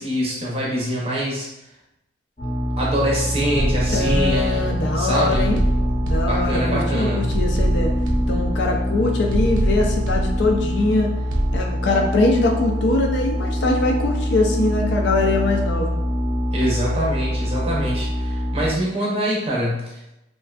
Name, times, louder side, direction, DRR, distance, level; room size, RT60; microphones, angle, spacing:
voice 1, 0.0-1.5 2.8-5.5 6.2-7.3 16.5-20.1, equal, 30° right, -5 dB, 0.6 m, -24 dB
sound 1, 2.4-18.7, equal, 25° left, 0.7 m, -24 dB
sound 2, 3.6-4.9 5.3-6.9 7.3-8.9 9.3-10.9 11.3-11.6, right 1 dB, 75° right, 0.3 m, -24 dB
voice 2, 3.9-5.6 6.0-7.9 8.3-11.1 11.5-16.0, left 2 dB, 65° left, 2 dB, 0.4 m, -22 dB
2.4 x 2.2 x 2.3 m, 0.91 s
head